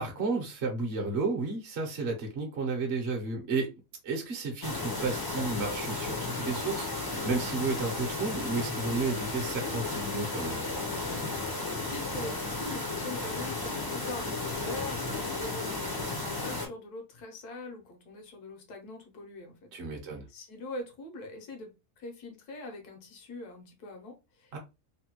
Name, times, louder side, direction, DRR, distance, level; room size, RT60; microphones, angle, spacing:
voice 1, 0.0-3.7 4.0-10.7 19.7-20.2 24.5-24.6, right 3 dB, 50° right, 0.9 m, -32 dB
sound 1, 4.6-16.7, left 2 dB, 35° left, 0.3 m, -34 dB
voice 2, 11.5-21.7 22.0-24.5, left 2 dB, 80° left, 1.4 m, -43 dB
3.3 x 2.2 x 2.8 m
omnidirectional pair, 1.6 m